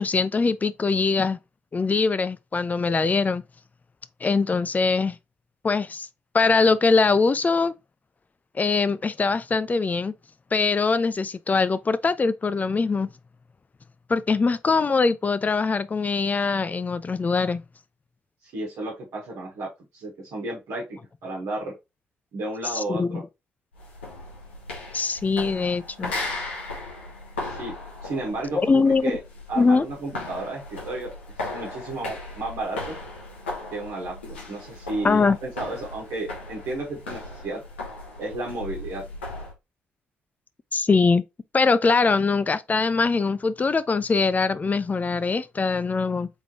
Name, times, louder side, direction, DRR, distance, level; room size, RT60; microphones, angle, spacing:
voice 1, 0.0-1.4 1.7-3.4 4.2-5.2 5.6-6.1 6.3-7.7 8.5-10.1 10.5-13.1 14.1-17.6 22.7-23.2 24.9-26.1 28.6-29.2 29.6-29.9 35.0-35.4 40.7-41.3 41.5-46.3, left 4 dB, 25° left, 0.4 m, -22 dB
voice 2, 18.4-21.7 22.3-23.2 27.4-27.7 28.0-29.2 29.5-31.1 31.4-33.0 33.7-34.1 34.5-37.6 38.2-39.0, right 2 dB, 60° right, 1.3 m, -33 dB
sound 1, 23.7-39.6, left 2 dB, 85° left, 1.0 m, -37 dB
3.7 x 3.6 x 3.0 m
figure-of-eight pair, 40°, 6 cm